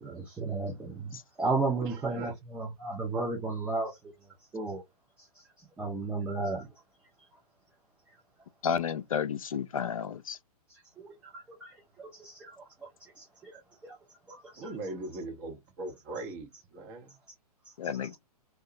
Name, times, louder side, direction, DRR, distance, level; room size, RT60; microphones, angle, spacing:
voice 1, 0.0-4.0 4.5-4.8 5.8-6.7 11.0-11.7 12.0-12.5 13.2-13.5 13.8-14.0 14.3-14.6, right 3 dB, 5° right, 0.4 m, -33 dB
voice 2, 1.8-2.3 14.6-17.2, right 2 dB, 30° right, 0.9 m, -40 dB
voice 3, 8.6-10.4 17.8-18.1, left 7 dB, 60° left, 0.4 m, -31 dB
2.7 x 2.2 x 2.4 m
figure-of-eight pair, 115°, 20 cm